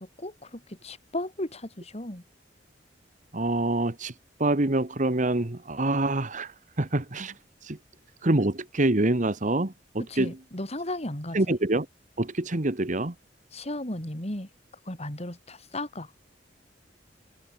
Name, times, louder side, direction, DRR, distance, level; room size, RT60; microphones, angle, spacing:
voice 1, 0.0-2.2 10.1-11.4 13.5-14.5 14.9-16.1, left 1 dB, 35° left, 4.2 m, -35 dB
voice 2, 3.3-4.1 4.4-7.4 7.6-7.8 8.2-10.3 11.3-11.9 12.2-13.1, right 2 dB, 45° right, 1.4 m, -26 dB
open air
head